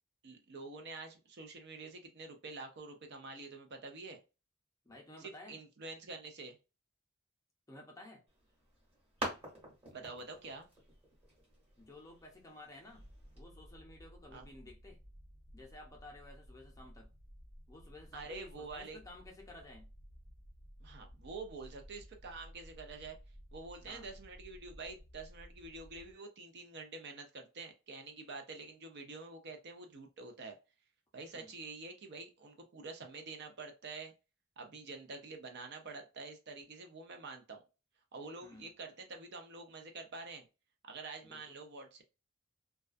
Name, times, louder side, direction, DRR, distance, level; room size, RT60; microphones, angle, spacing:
voice 1, 0.2-4.2 5.2-6.6 9.9-10.7 14.3-14.5 18.1-19.0 20.8-23.2 23.5-30.6 31.1-34.1 34.6-37.6 38.1-40.5 40.8-42.0, right 3 dB, 55° right, 0.5 m, -47 dB
voice 2, 4.8-5.6 7.7-8.2 11.8-13.1 13.4-15.0 15.5-17.1 17.7-19.9 23.9-24.1 31.3-31.5 38.4-38.7 41.2-41.6, left 2 dB, 15° left, 0.6 m, -54 dB
Rock falling on hard ground, 8.3-13.4, right 1 dB, 30° right, 1.1 m, -47 dB
sound 1, 12.9-26.1, equal, 85° right, 1.0 m, -56 dB
2.3 x 2.2 x 2.4 m
head